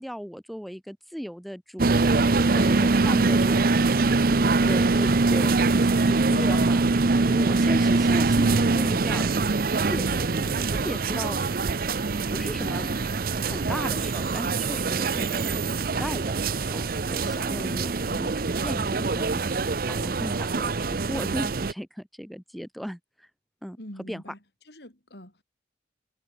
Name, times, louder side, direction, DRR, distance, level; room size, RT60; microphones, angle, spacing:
voice 1, 0.0-4.0 4.3-5.6 6.1-9.4 9.8-11.4 12.1-12.9 13.4-19.4 19.9-23.3 23.6-23.8 24.1-24.2, equal, ahead, 5.5 m, -36 dB
sound 1, 1.8-21.7, right 3 dB, 55° right, 0.7 m, -23 dB
voice 2, 23.8-24.4 24.7-25.4, equal, 65° left, 5.9 m, -44 dB
head